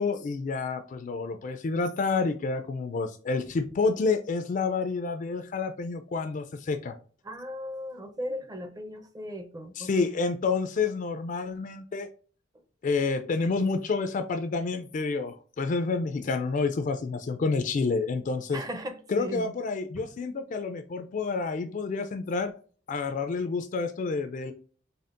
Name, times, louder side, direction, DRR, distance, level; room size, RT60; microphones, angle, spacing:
voice 1, 0.0-7.0 9.8-12.1 12.8-18.6 19.1-22.5 22.9-24.5, left 4 dB, 45° left, 0.3 m, -29 dB
voice 2, 7.2-10.1 18.5-19.5 19.9-20.1, equal, 20° right, 0.6 m, -37 dB
4.2 x 3.4 x 2.5 m
head